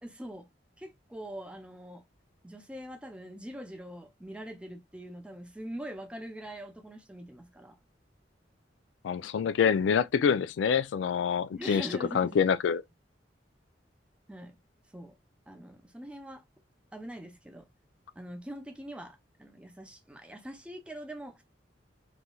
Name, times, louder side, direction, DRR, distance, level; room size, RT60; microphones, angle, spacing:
voice 1, 0.0-0.5 0.8-2.0 2.4-7.8 11.5-12.4 14.3-14.6 14.9-15.1 15.5-16.4 16.9-17.7 18.2-21.4, right 1 dB, 5° right, 0.6 m, -43 dB
voice 2, 9.0-11.9 12.1-12.8, left 7 dB, 80° left, 0.3 m, -26 dB
3.1 x 2.7 x 2.2 m
head